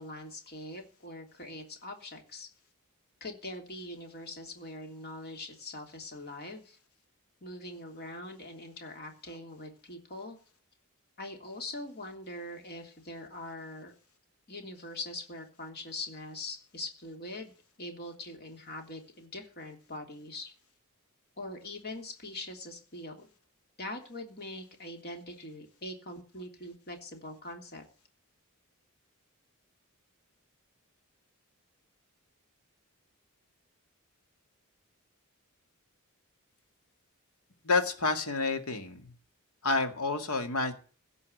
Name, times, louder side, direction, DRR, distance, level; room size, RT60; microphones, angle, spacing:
voice 1, 0.0-2.5 3.2-6.8 7.4-10.4 11.2-13.9 14.5-20.5 21.4-23.3 23.8-27.8, left 2 dB, 45° left, 3 dB, 3.2 m, -42 dB
voice 2, 37.6-39.1 39.6-40.7, left 3 dB, 75° left, 6 dB, 2.2 m, -29 dB
16.5 x 5.6 x 9.3 m, 0.38 s
head